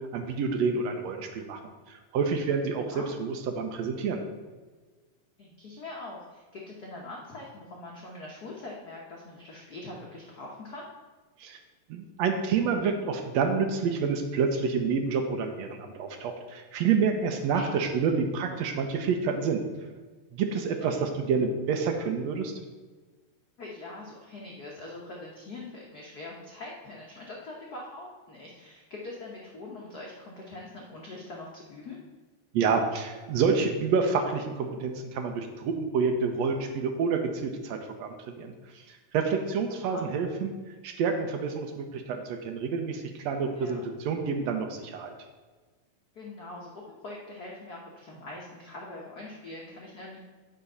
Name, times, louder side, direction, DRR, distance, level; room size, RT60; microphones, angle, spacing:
voice 1, 0.1-1.6 1.9-4.2 11.4-11.6 11.9-19.6 20.3-22.5 32.5-40.5 40.8-45.1, right 5 dB, 75° right, 5 dB, 1.8 m, -28 dB
voice 2, 5.4-10.9 17.5-17.7 20.7-21.0 23.6-32.0 39.7-40.1 43.5-43.8 46.1-50.2, left 2 dB, 75° left, -3 dB, 0.8 m, -43 dB
9.4 x 5.0 x 5.5 m, 1.3 s
omnidirectional pair, 3.4 m